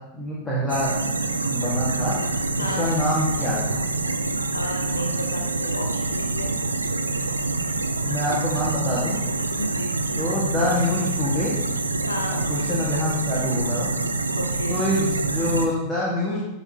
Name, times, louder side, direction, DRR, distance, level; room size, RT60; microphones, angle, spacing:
voice 1, 0.1-0.9 1.5-2.2 2.6-3.8 8.0-9.2 10.2-11.5 12.5-13.9 14.7-16.4, left 1 dB, 15° left, -7 dB, 1.7 m, -25 dB
sound 1, 0.7-15.7, right 3 dB, 80° right, 0.4 m, -26 dB
voice 2, 2.5-2.9 4.5-6.5 9.6-10.0 12.0-12.4 14.4-14.8, left 1 dB, 75° left, 3 dB, 0.8 m, -32 dB
11.0 x 4.1 x 2.9 m, 0.96 s
figure-of-eight pair, 90°, 0 cm